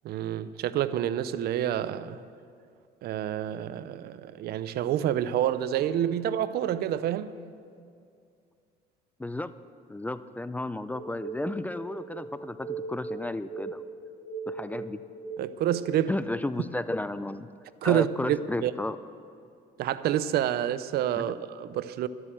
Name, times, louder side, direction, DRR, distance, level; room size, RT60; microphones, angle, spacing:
voice 1, 0.0-2.2 3.0-7.4 15.4-16.1 17.8-18.7 19.8-22.1, right 11 dB, 70° right, 0.6 m, -28 dB
voice 2, 9.2-9.5 9.9-13.8 14.5-15.0 16.1-17.5 17.8-19.0 21.1-21.3, left 2 dB, 10° left, 0.4 m, -33 dB
sound 1, 10.9-15.7, right 4 dB, 55° left, 3.8 m, -39 dB
12.0 x 12.0 x 7.4 m
cardioid pair, 110°, 17 cm